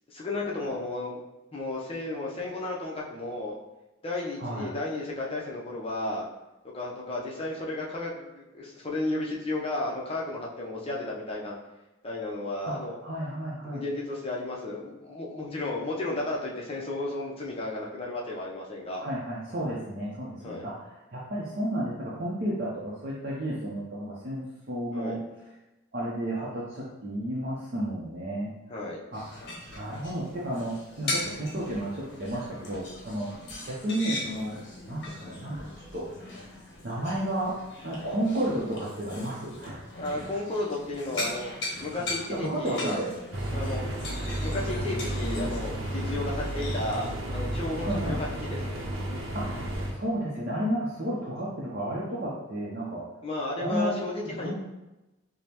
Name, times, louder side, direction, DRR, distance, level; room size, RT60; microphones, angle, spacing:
voice 1, 0.1-1.2 1.5-3.6 4.0-6.3 6.7-11.6 12.0-13.0 13.6-19.1 20.4-20.7 24.9-25.2 28.7-29.0 33.8-33.9 40.0-41.5 41.8-43.0 43.5-43.8 44.4-48.8 53.2-54.6, left 2 dB, 30° left, -3 dB, 0.6 m, -33 dB
voice 2, 4.4-4.7 12.7-13.8 19.0-20.7 21.1-25.2 25.9-28.5 29.1-29.2 29.8-33.3 33.6-34.6 34.9-35.6 35.9-36.1 36.8-37.5 37.8-39.9 42.3-43.1 47.8-48.2 49.3-53.0 53.6-53.9 54.2-54.6, right 1 dB, 50° right, -6 dB, 0.6 m, -32 dB
sound 1, 29.1-47.2, left 2 dB, 55° left, 0.8 m, -39 dB
sound 2, 43.3-49.9, right 1 dB, 85° right, 0.7 m, -32 dB
5.0 x 2.1 x 2.9 m, 1.0 s
head